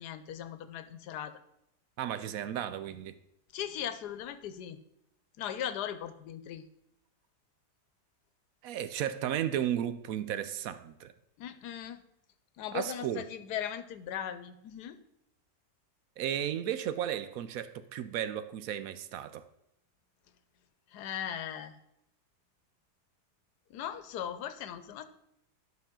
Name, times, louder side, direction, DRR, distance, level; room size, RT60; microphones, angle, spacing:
voice 1, 0.0-1.4 3.5-4.8 5.4-6.6 11.4-12.0 12.6-15.0 20.9-21.7 23.7-25.0, left 10 dB, 80° left, 1.2 m, -38 dB
voice 2, 2.0-3.1 8.6-11.1 12.7-13.3 16.2-19.4, right 10 dB, 70° right, 0.9 m, -34 dB
11.5 x 5.7 x 3.7 m
omnidirectional pair, 1.7 m